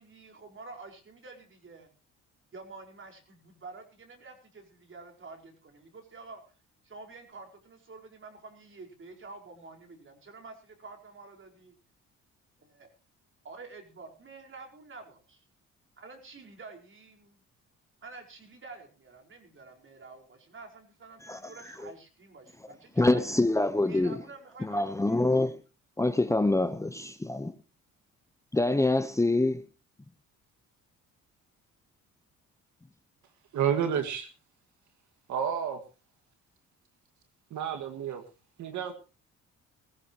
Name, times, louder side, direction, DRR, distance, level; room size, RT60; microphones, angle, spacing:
voice 1, 0.0-1.9 2.5-6.6 6.8-11.7 12.6-12.9 13.4-15.4 16.0-17.4 18.0-23.2 23.8-25.2, right 3 dB, 40° right, 4.9 m, -48 dB
voice 2, 23.0-24.2 24.6-25.5 26.0-27.5 28.5-29.6, left 2 dB, 10° left, 0.9 m, -25 dB
voice 3, 33.5-34.3 35.3-35.8 37.5-38.2 38.6-38.9, right 8 dB, 75° right, 2.0 m, -30 dB
20.0 x 15.5 x 3.0 m
cardioid pair, 90°, 30 cm